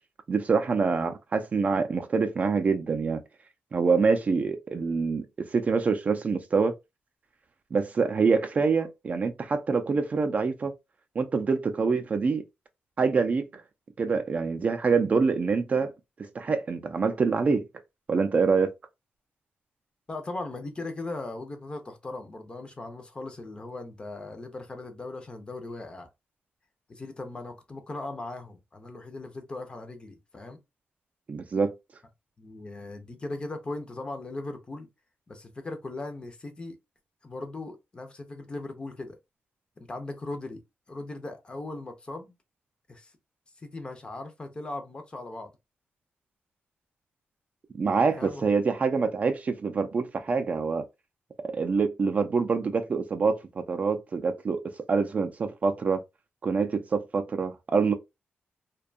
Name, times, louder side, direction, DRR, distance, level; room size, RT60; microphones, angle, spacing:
voice 1, 0.3-3.2 3.7-6.7 7.7-10.7 11.2-12.4 13.0-13.6 14.0-15.9 16.3-17.6 18.1-18.7 31.3-31.7 47.7-50.8 51.4-54.6 54.9-56.0 56.4-57.9, right 4 dB, 40° right, 0.4 m, -25 dB
voice 2, 20.1-26.1 26.9-30.6 32.4-34.9 35.3-36.8 37.2-39.2 39.8-40.6 40.9-42.3 42.9-43.1 43.6-45.5 47.8-48.8, left 2 dB, 25° left, 0.5 m, -38 dB
2.6 x 2.2 x 2.4 m
wide cardioid pair, 135°, 4 cm